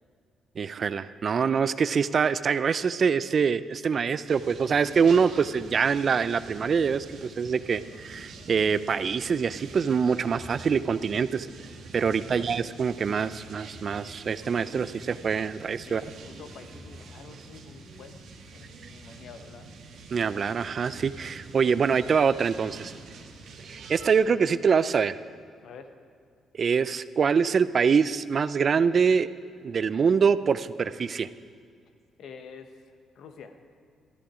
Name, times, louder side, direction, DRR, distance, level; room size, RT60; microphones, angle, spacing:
voice 1, 0.6-11.5 11.9-16.0 20.1-22.9 23.7-25.2 26.5-29.3 29.6-31.3, right 6 dB, 45° right, 15 dB, 0.4 m, -24 dB
sound 1, 4.3-24.2, right 3 dB, 75° right, 1.3 m, -46 dB
voice 2, 12.1-12.5 15.9-18.2 18.5-19.7 25.6-25.9 32.2-33.6, left 6 dB, 70° left, 7 dB, 1.0 m, -47 dB
13.0 x 11.5 x 5.0 m, 2.3 s
cardioid pair, 90°, 0 cm